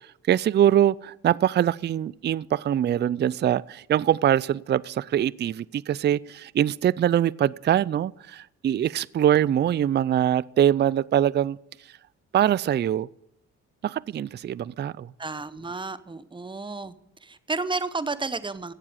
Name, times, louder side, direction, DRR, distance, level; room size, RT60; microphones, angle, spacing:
voice 1, 0.3-11.6 12.3-13.1 13.8-15.1, right 10 dB, 35° right, 0.4 m, -23 dB
voice 2, 15.2-16.9 17.2-18.7, right 3 dB, 15° right, 1.0 m, -31 dB
16.5 x 7.5 x 8.2 m
cardioid pair, 90°, 30 cm